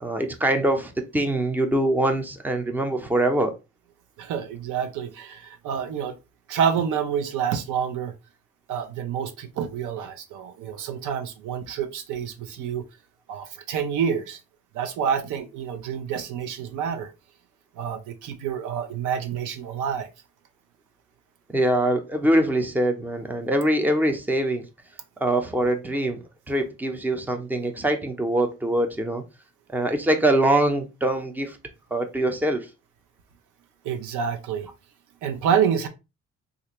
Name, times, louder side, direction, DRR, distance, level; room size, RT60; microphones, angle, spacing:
voice 1, 0.0-3.5 21.5-24.7 25.2-26.2 26.5-29.2 29.7-31.6 31.9-32.7, right 1 dB, 5° right, 0.5 m, -23 dB
voice 2, 4.2-6.2 6.5-8.1 8.7-12.9 13.3-14.4 14.7-17.1 17.8-20.1 33.8-34.7 35.2-35.9, right 7 dB, 90° right, 0.6 m, -28 dB
3.3 x 2.5 x 2.9 m
cardioid pair, 90°, 30 cm